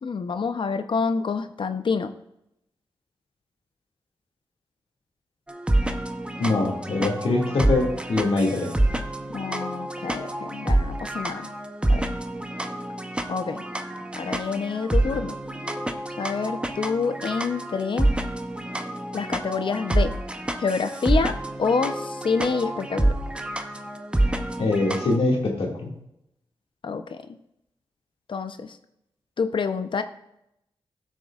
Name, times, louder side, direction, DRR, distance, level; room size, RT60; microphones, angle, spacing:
voice 1, 0.0-2.1 9.3-11.5 11.9-12.1 13.3-13.6 14.2-15.4 16.2-18.1 19.1-20.1 20.6-23.1 26.8-27.4 28.3-28.8 29.4-30.0, left 5 dB, 60° left, 9 dB, 0.7 m, -27 dB
sound 1, 5.5-25.2, right 1 dB, 10° right, 0.8 m, -27 dB
voice 2, 6.4-8.7 24.6-25.9, left 2 dB, 75° left, -1 dB, 2.1 m, -23 dB
15.5 x 6.5 x 2.4 m, 0.81 s
cardioid pair, 70°, 10 cm